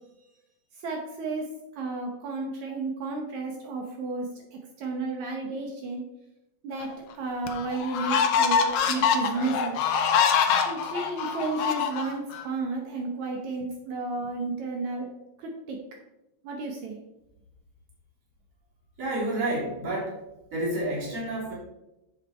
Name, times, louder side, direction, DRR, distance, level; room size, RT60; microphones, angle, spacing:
voice 1, 0.7-1.5 1.7-6.0 6.6-9.7 10.7-15.1 15.4-15.8 16.4-17.0, right 3 dB, 65° right, 1 dB, 2.2 m, -32 dB
sound 1, 6.8-6.9 7.5-12.4, left 7 dB, 90° left, 1.3 m, -24 dB
voice 2, 19.0-20.2 20.5-21.5, right 1 dB, 25° right, -6 dB, 3.5 m, -29 dB
8.3 x 6.8 x 4.3 m, 0.94 s
omnidirectional pair, 3.9 m